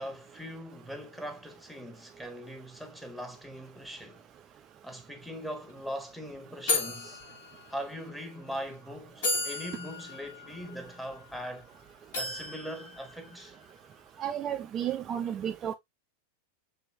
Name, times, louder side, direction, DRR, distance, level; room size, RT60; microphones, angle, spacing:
voice 1, 0.0-4.3 4.8-7.2 7.7-11.7 12.2-13.6, equal, 5° left, 1.0 m, -41 dB
sound 1, 5.3-5.4 5.7-5.9 6.7-8.1 8.7-8.8 9.2-11.6 12.1-13.8, left 3 dB, 60° left, 1.4 m, -35 dB
voice 2, 14.2-15.7, right 9 dB, 30° right, 0.3 m, -32 dB
6.7 x 2.8 x 2.5 m
figure-of-eight pair, 90°, 0 cm